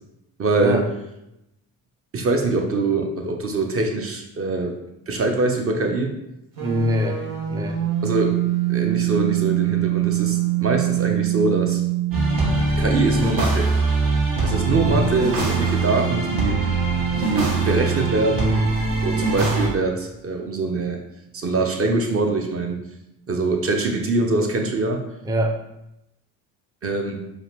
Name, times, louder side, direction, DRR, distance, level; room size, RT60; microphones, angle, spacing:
voice 1, 0.4-0.8 2.1-4.8 5.1-6.1 8.0-8.4 8.7-11.8 12.8-13.7 14.4-16.7 17.2-18.7 19.0-21.0 21.3-22.8 23.3-25.1 26.8-27.2, right 3 dB, 35° right, 3 dB, 0.8 m, -23 dB
sound 1, 6.5-12.6, right 15 dB, 80° right, 1.1 m, -23 dB
voice 2, 6.6-7.8 14.7-15.1 25.2-25.6, equal, 10° right, 4 dB, 0.5 m, -24 dB
sound 2, 12.1-19.7, right 3 dB, 60° right, 1.1 m, -22 dB
4.9 x 2.5 x 3.2 m, 0.87 s
supercardioid pair, 65°, 40 cm